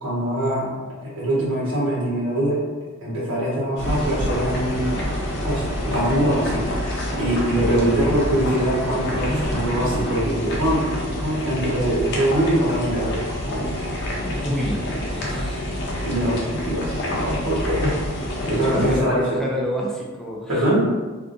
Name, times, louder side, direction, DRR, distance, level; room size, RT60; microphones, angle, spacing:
voice 1, 0.0-2.6 3.0-4.9 5.4-6.7 7.1-13.7 16.0-18.0 18.4-19.2 20.5-20.9, right 1 dB, 60° right, -8 dB, 1.4 m, -23 dB
sound 1, 3.8-19.0, left 1 dB, 55° left, 0.7 m, -28 dB
sound 2, 3.8-10.2, equal, 15° right, 1.0 m, -32 dB
voice 2, 14.2-15.8 18.6-20.9, equal, ahead, -3 dB, 0.3 m, -28 dB
3.5 x 2.6 x 2.6 m, 1.3 s
head